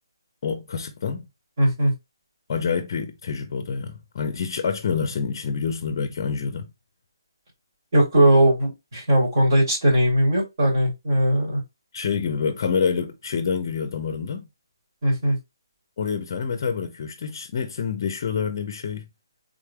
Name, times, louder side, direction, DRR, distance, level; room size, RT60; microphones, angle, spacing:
voice 1, 0.4-1.3 2.5-6.7 11.9-14.5 16.0-19.1, left 6 dB, 40° left, 0.5 m, -27 dB
voice 2, 1.6-1.9 7.9-11.6 15.0-15.4, right 1 dB, 50° right, 2.3 m, -19 dB
3.6 x 3.2 x 2.2 m
hypercardioid pair, 165°, 2 cm